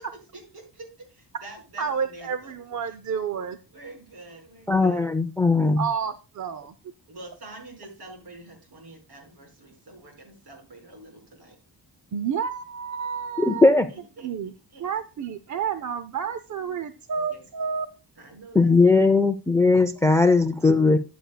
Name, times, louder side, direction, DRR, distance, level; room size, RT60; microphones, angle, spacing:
voice 1, 0.3-2.5 2.8-2.9 3.7-5.0 7.1-11.6 13.9-14.3 14.7-14.8 17.3-17.4 18.2-19.2, right 2 dB, 65° right, 2 dB, 4.9 m, -46 dB
voice 2, 1.8-3.6 5.8-6.7 12.1-13.8 14.2-14.5 14.8-17.9, right 7 dB, 45° right, 11 dB, 0.6 m, -30 dB
voice 3, 4.7-5.8 13.4-13.9 18.5-21.0, left 3 dB, 5° left, 11 dB, 0.5 m, -18 dB
14.0 x 9.2 x 2.2 m, 0.32 s
wide cardioid pair, 165°, 42 cm